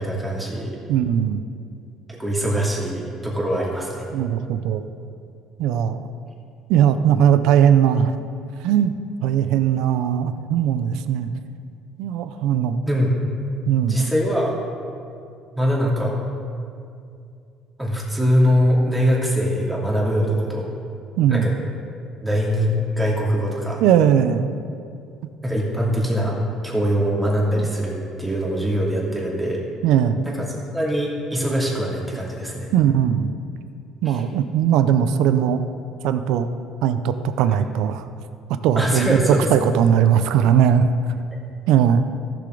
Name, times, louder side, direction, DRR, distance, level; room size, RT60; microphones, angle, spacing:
voice 1, 0.0-0.8 2.1-4.1 12.9-13.2 13.9-14.5 15.6-16.1 17.8-20.7 21.3-21.5 22.2-23.8 25.4-26.3 26.6-29.6 30.2-30.4 30.7-32.7 34.0-34.2 38.7-39.7, equal, 5° right, -4 dB, 2.6 m, -22 dB
voice 2, 0.9-1.4 4.1-4.8 5.6-6.0 6.7-8.1 8.6-8.9 9.2-11.3 12.0-12.8 13.7-14.1 21.2-21.5 23.8-24.5 29.8-30.2 32.7-33.3 34.0-35.6 36.0-36.5 36.8-38.0 38.6-40.9 41.7-42.0, right 9 dB, 80° right, 10 dB, 0.5 m, -19 dB
14.5 x 6.8 x 3.9 m, 2.4 s
cardioid pair, 100°, 0 cm